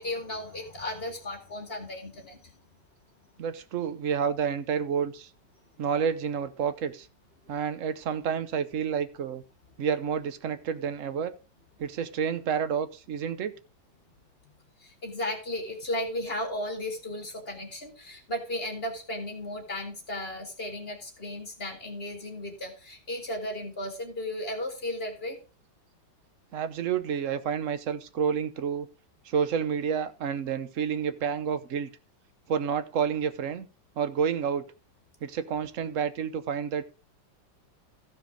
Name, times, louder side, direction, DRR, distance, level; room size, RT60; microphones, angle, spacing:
voice 1, 0.0-2.5 14.4-14.5 14.8-25.4, left 1 dB, 30° left, 3 dB, 2.4 m, -35 dB
voice 2, 3.4-5.3 5.8-7.1 7.5-9.4 9.8-11.3 11.8-13.5 26.5-28.9 29.2-31.9 32.5-33.7 34.0-34.7 35.2-36.8, right 7 dB, 55° right, 11 dB, 0.9 m, -29 dB
14.5 x 5.1 x 5.0 m, 0.33 s
omnidirectional pair, 2.1 m